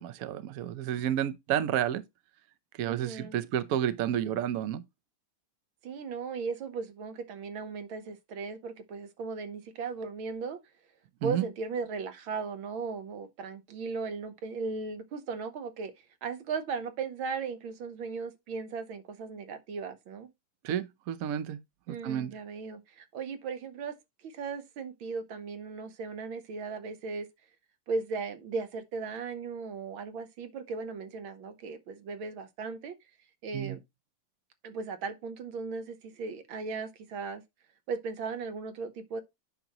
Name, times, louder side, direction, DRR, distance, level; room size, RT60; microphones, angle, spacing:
voice 1, 0.0-2.0 2.7-4.8 11.2-11.5 20.6-21.6 21.9-22.3 33.5-33.8, right 10 dB, 60° right, 1.0 m, -31 dB
voice 2, 2.9-3.4 5.8-10.6 11.2-15.9 16.2-20.3 21.9-24.0 24.2-27.3 27.9-33.0 33.4-33.8 34.6-37.4 37.9-39.2, right 4 dB, 85° right, 1.9 m, -37 dB
9.0 x 5.9 x 3.0 m
omnidirectional pair, 2.1 m